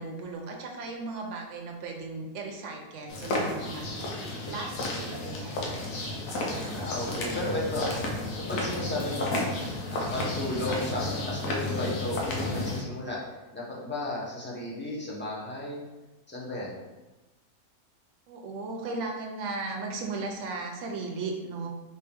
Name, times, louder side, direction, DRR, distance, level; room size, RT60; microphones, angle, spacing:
voice 1, 0.0-3.9 4.5-5.7 18.3-21.7, right 3 dB, 60° right, 1 dB, 0.9 m, -36 dB
sound 1, 3.1-12.8, left 2 dB, 85° left, 1.3 m, -32 dB
voice 2, 6.6-8.0 8.5-9.6 9.9-13.2 13.5-15.8 16.3-16.8, left 1 dB, 10° left, -6 dB, 0.7 m, -34 dB
4.4 x 3.2 x 3.5 m, 1.1 s
omnidirectional pair, 1.6 m